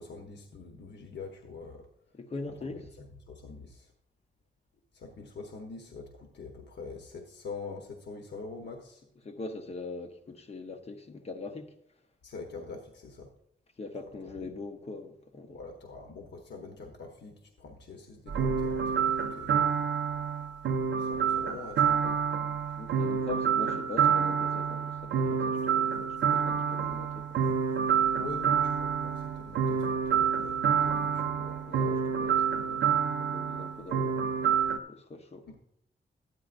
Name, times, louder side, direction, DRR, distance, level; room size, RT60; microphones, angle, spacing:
voice 1, 0.0-1.9 2.5-3.9 4.9-9.0 12.2-13.3 14.2-14.5 15.5-19.8 20.9-22.2 28.1-31.7 35.5-35.6, left 4 dB, 75° left, 1.0 m, -45 dB
voice 2, 2.1-2.8 9.2-11.7 13.8-15.6 22.8-27.3 31.7-35.5, left 3 dB, 35° left, 0.8 m, -42 dB
sound 1, 18.3-34.8, right 7 dB, 85° right, 0.6 m, -28 dB
13.0 x 9.3 x 2.5 m
wide cardioid pair, 175°, 18 cm